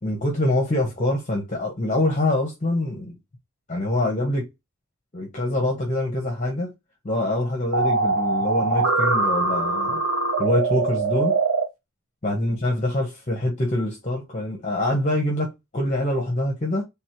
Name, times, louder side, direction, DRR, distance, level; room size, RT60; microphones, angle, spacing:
voice 1, 0.0-3.1 3.7-4.5 5.1-6.7 7.0-10.0 10.4-11.4 12.2-16.8, left 1 dB, 35° left, 1.2 m, -25 dB
sound 1, 7.7-11.6, right 3 dB, 85° right, 1.2 m, -22 dB
3.6 x 3.2 x 4.4 m
head